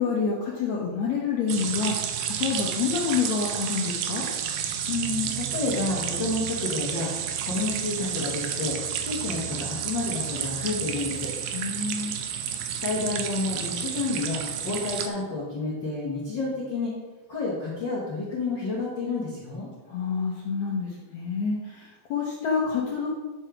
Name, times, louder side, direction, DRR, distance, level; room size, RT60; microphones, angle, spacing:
voice 1, 0.0-4.3 11.5-12.2 19.9-23.1, left 5 dB, 70° left, -4 dB, 1.7 m, -28 dB
sound 1, 1.5-15.1, right 8 dB, 80° right, 2.4 m, -31 dB
voice 2, 4.9-8.8 9.0-11.3 12.8-16.9 17.3-19.7, left 3 dB, 90° left, -5 dB, 1.0 m, -30 dB
9.7 x 4.8 x 5.0 m, 1.2 s
omnidirectional pair, 4.6 m